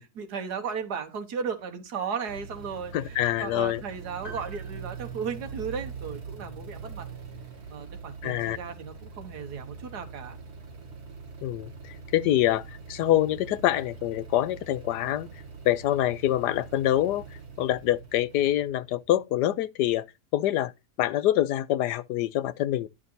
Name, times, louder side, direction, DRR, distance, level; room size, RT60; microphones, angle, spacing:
voice 1, 0.0-7.1 7.7-10.4, right 6 dB, 75° right, 1.8 m, -35 dB
sound 1, 2.3-19.5, right 5 dB, 40° right, 1.6 m, -43 dB
voice 2, 2.9-3.8 8.2-8.6 11.4-15.3 15.6-17.2 17.6-20.0 20.3-20.7 21.0-22.9, left 13 dB, 85° left, 1.2 m, -25 dB
sound 2, 4.2-6.0, equal, 40° left, 4.8 m, -48 dB
11.0 x 5.8 x 2.7 m
omnidirectional pair, 1.8 m